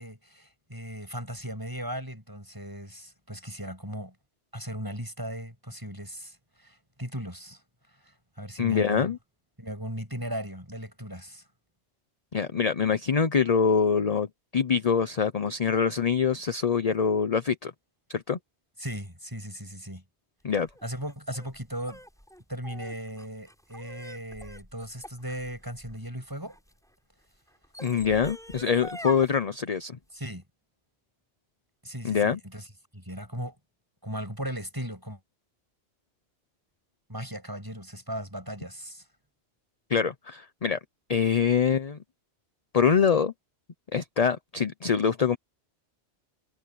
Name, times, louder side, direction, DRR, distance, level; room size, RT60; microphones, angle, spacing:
voice 1, 0.0-4.2 4.5-7.6 8.0-9.1 9.6-11.4 18.8-20.0 20.8-22.0 22.5-26.6 30.1-30.4 31.8-32.7 32.9-33.5 34.0-35.2 37.1-39.0, equal, 20° right, 7.5 m, -37 dB
voice 2, 8.6-9.2 12.3-14.3 14.5-17.7 18.1-18.4 20.4-20.7 27.8-30.0 32.0-32.4 39.9-40.8 41.1-42.0 42.7-43.3 43.9-45.4, left 6 dB, 40° left, 0.8 m, -24 dB
sound 1, 20.6-26.7 27.5-29.3, equal, 5° left, 7.6 m, -44 dB
omnidirectional pair, 1.2 m